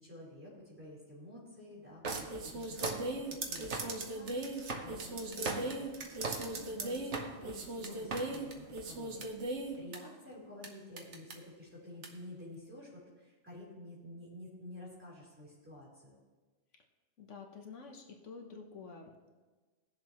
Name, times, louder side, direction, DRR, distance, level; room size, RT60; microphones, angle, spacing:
voice 1, 0.0-12.9 13.2-16.1, left 1 dB, 10° right, -7 dB, 3.9 m, -51 dB
sound 1, 2.0-10.0 10.6-10.7 11.0-11.3 12.0-12.1, right 2 dB, 75° right, 1.3 m, -38 dB
voice 2, 17.2-19.3, left 5 dB, 90° left, 3 dB, 1.4 m, -49 dB
17.5 x 7.2 x 3.1 m, 1.3 s
omnidirectional pair, 1.2 m